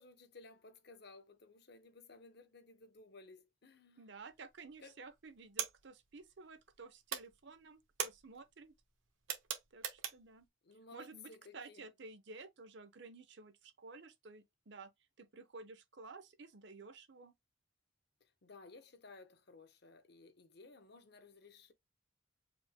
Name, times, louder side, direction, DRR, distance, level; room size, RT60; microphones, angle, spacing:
voice 1, 0.0-4.1 4.8-5.0 10.6-11.8 18.2-21.7, left 3 dB, 55° left, 0.8 m, -57 dB
voice 2, 4.0-8.7 9.7-10.5 10.9-14.9 15.2-17.3, right 3 dB, 60° right, 0.7 m, -53 dB
sound 1, 4.3-4.8 5.1-6.8 7.0-10.4, right 8 dB, 80° right, 1.0 m, -42 dB
5.1 x 2.1 x 3.5 m
head